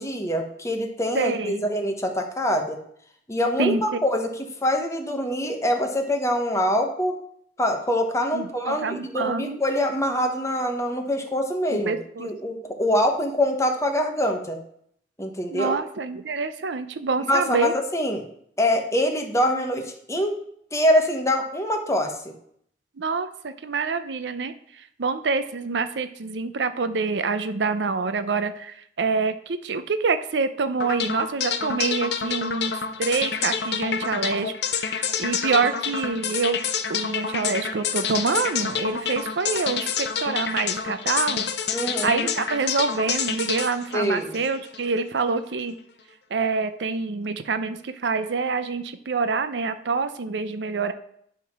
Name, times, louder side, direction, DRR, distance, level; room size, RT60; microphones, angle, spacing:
voice 1, 0.0-2.8 3.3-4.3 4.6-7.2 7.6-14.6 15.2-15.8 17.3-18.2 18.6-20.4 20.7-22.3 41.7-42.3 43.9-44.3, equal, 15° left, 4 dB, 1.1 m, -24 dB
voice 2, 1.1-1.6 3.6-4.0 8.3-9.6 11.7-12.3 15.5-17.7 23.0-36.6 36.9-41.5 42.0-45.8 46.3-50.9, right 4 dB, 80° right, 11 dB, 0.6 m, -26 dB
sound 1, 30.8-44.9, left 7 dB, 70° left, 0.7 m, -28 dB
10.0 x 3.7 x 5.8 m, 0.67 s
head